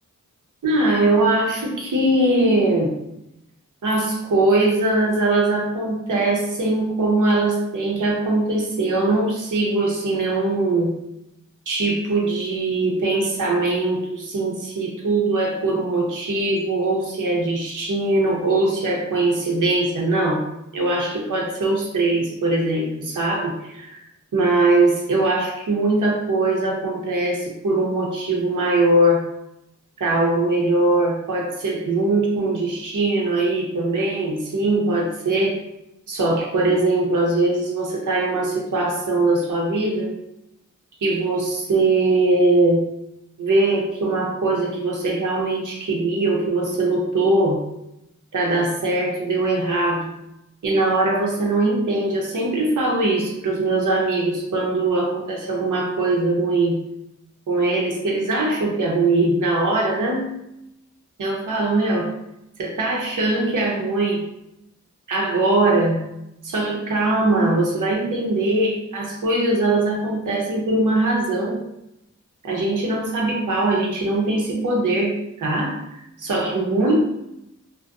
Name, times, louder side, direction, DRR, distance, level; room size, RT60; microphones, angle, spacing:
voice 1, 0.6-2.9 3.8-10.9 11.7-20.4 20.7-24.0 24.3-29.2 30.0-35.6 36.1-40.1 41.0-42.9 43.4-47.6 48.3-50.1 50.6-56.8 57.5-60.3 61.2-62.1 62.6-64.2 65.1-66.0 66.4-71.6 72.4-77.0, right 2 dB, 85° right, -1 dB, 0.6 m, -21 dB
2.6 x 2.1 x 2.3 m, 0.84 s
wide cardioid pair, 65°, 30 cm